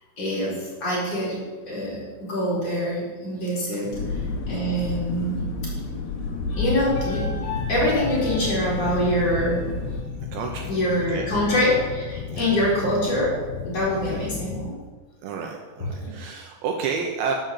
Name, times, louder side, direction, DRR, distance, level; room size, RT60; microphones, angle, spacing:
voice 1, 0.2-1.4 1.7-5.4 6.5-9.7 10.7-14.8 15.8-16.1, equal, 30° left, -7 dB, 4.9 m, -25 dB
voice 2, 3.6-3.9 10.3-10.7 11.1-11.3 12.3-12.5 14.1-14.3 15.2-17.3, right 6 dB, 75° right, 2 dB, 3.0 m, -31 dB
sound 1, 3.9-10.0, left 3 dB, 70° left, 3.3 m, -30 dB
sound 2, 7.5-14.7, left 10 dB, 85° left, 2.3 m, -35 dB
11.5 x 8.0 x 7.7 m, 1.4 s
omnidirectional pair, 5.7 m